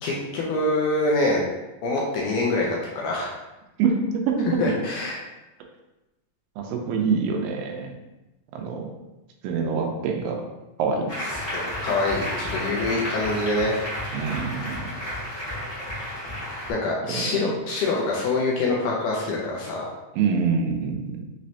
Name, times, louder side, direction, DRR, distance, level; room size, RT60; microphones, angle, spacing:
voice 1, 0.0-1.4 1.8-2.7 3.0-3.3 4.6-5.2 11.5-13.8 16.7-19.9, left 2 dB, 80° left, -3 dB, 2.0 m, -25 dB
voice 2, 3.8-4.6 6.6-7.9 8.5-8.9 9.4-10.4 10.8-11.1 14.1-14.9 17.1-17.5 20.2-21.2, right 5 dB, 90° right, 2 dB, 2.4 m, -25 dB
Applause, 11.1-16.7, equal, 45° left, 0.7 m, -32 dB
6.0 x 3.1 x 2.8 m, 1.0 s
omnidirectional pair, 4.0 m